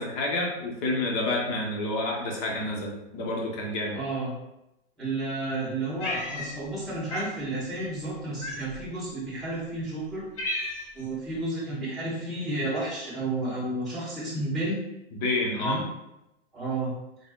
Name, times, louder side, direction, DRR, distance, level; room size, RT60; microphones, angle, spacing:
voice 1, 0.0-4.0 15.1-15.8, left 2 dB, 40° left, -1 dB, 1.1 m, -29 dB
voice 2, 3.9-4.3 5.0-10.2 10.9-14.8 15.6-15.8 16.5-16.9, right 2 dB, ahead, -12 dB, 1.4 m, -31 dB
Cat, 6.0-6.8 7.1-7.3 8.4-8.9 9.6-9.7 10.0-11.1, left 1 dB, 20° left, 0.7 m, -33 dB
4.0 x 3.4 x 2.5 m, 0.89 s
hypercardioid pair, 135°, 34 cm